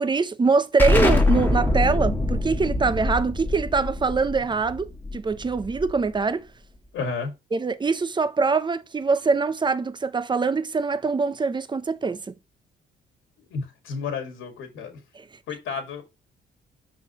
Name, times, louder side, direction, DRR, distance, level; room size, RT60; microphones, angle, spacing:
voice 1, 0.0-6.5 7.5-12.3 15.1-15.2, right 4 dB, 25° right, 0.7 m, -23 dB
Explosion, 0.8-6.2, left 2 dB, 10° left, 1.6 m, -24 dB
voice 2, 6.9-7.3 13.5-15.0 15.5-16.0, left 5 dB, 85° left, 2.0 m, -31 dB
6.1 x 5.5 x 3.0 m
cardioid pair, 90°, 20 cm